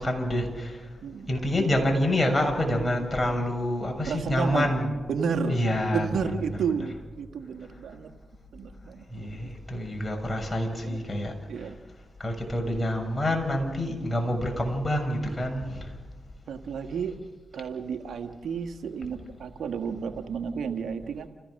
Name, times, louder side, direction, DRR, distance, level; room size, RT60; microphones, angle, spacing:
voice 1, 0.0-0.9 1.3-4.9 5.5-6.1 9.1-11.7 12.2-15.9, left 1 dB, 25° left, 3 dB, 7.0 m, -27 dB
voice 2, 4.1-4.7 5.1-5.6 5.9-8.1 8.5-9.5 10.8-11.0 11.5-11.7 13.9-14.0 16.5-17.1 17.5-21.3, right 6 dB, 75° right, 6 dB, 1.5 m, -32 dB
29.5 x 16.0 x 6.5 m, 1.3 s
supercardioid pair, 45°, 0 cm